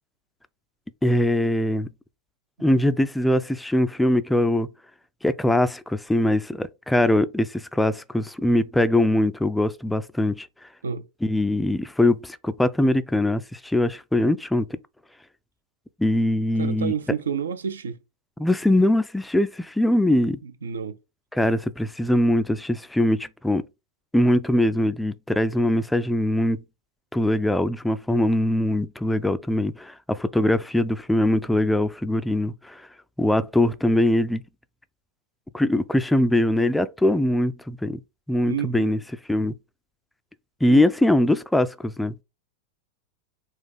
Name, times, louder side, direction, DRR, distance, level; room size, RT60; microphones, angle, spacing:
voice 1, 1.0-1.9 2.6-4.7 5.2-10.5 11.2-14.7 16.0-16.9 18.4-20.4 21.3-23.6 24.1-26.6 27.1-32.7 33.2-34.4 35.5-38.0 38.3-39.0 39.3-39.5 40.6-42.1, left 1 dB, 5° left, 0.3 m, -22 dB
voice 2, 16.5-18.0 20.4-21.0 38.5-38.9 40.7-40.8, right 7 dB, 70° right, 0.5 m, -29 dB
4.0 x 2.4 x 4.1 m
figure-of-eight pair, 90°, 0 cm